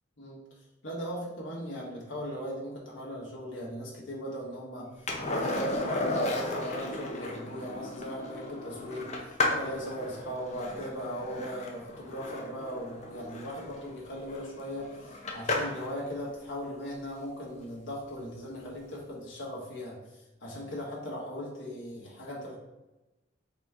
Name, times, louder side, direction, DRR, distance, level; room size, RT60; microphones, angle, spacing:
voice 1, 0.8-9.1 9.5-22.6, equal, 80° left, -4 dB, 1.4 m, -38 dB
Skateboard, 5.1-15.9 18.5-18.6, left 2 dB, 35° left, 0.7 m, -34 dB
4.2 x 3.0 x 3.5 m, 1.0 s
head